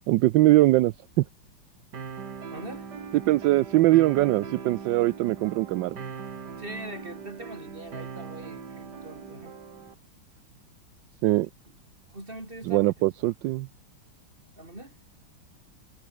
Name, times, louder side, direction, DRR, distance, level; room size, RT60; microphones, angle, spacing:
voice 1, 0.1-1.2 3.3-6.0 11.2-11.5 12.7-13.7, right 17 dB, 75° right, 1.1 m, -22 dB
sound 1, 1.9-9.9, right 6 dB, 55° right, 2.6 m, -40 dB
voice 2, 2.5-2.9 6.6-9.5 11.7-11.8 12.1-12.9 14.6-15.0, right 1 dB, 25° right, 6.7 m, -42 dB
omnidirectional pair, 2.3 m